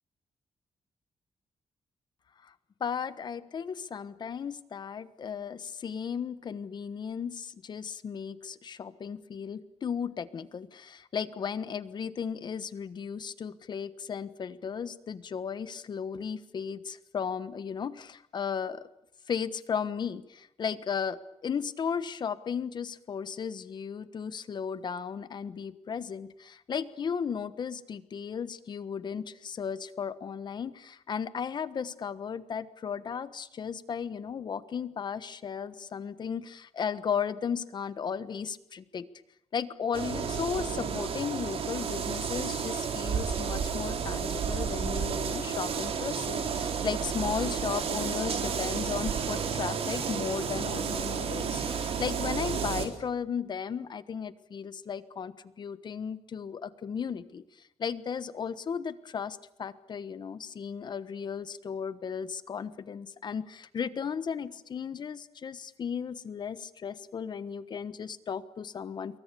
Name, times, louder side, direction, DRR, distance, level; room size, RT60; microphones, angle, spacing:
voice 1, 2.8-18.9 19.3-39.1 39.5-57.4 57.8-69.2, left 7 dB, 45° left, 14 dB, 1.2 m, -35 dB
sound 1, 39.9-52.9, right 6 dB, 65° right, 3.9 m, -31 dB
27.5 x 23.0 x 7.0 m, 0.82 s
wide cardioid pair, 170°, 11 cm